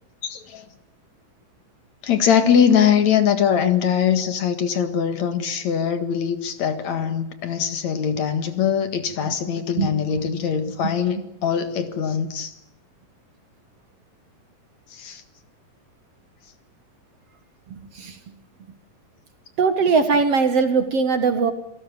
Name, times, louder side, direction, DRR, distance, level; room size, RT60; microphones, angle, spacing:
voice 1, 0.2-0.6 2.0-12.5 14.9-15.2, left 8 dB, 60° left, 10 dB, 2.9 m, -22 dB
voice 2, 17.7-18.2 19.6-21.5, right 5 dB, 50° right, 9 dB, 2.3 m, -20 dB
28.0 x 17.5 x 9.5 m, 0.80 s
omnidirectional pair, 3.9 m